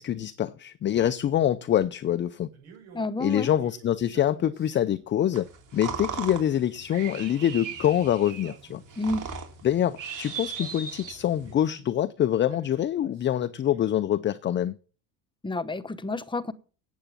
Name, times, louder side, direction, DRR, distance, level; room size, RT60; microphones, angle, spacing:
voice 1, 0.0-2.5 3.2-5.5 5.7-8.8 9.6-14.8, left 11 dB, 25° left, 0.5 m, -25 dB
Male speech man speaking, 2.5-5.1 6.0-7.8 8.2-9.5 10.4-11.9 12.5-14.0, right 6 dB, 80° right, 7.0 m, -53 dB
voice 2, 2.9-3.5 9.0-9.2 15.4-16.5, left 2 dB, 10° left, 1.0 m, -29 dB
sound 1, 5.3-11.5, right 6 dB, 40° right, 3.4 m, -38 dB
8.7 x 8.2 x 7.4 m
supercardioid pair, 90°, 46 cm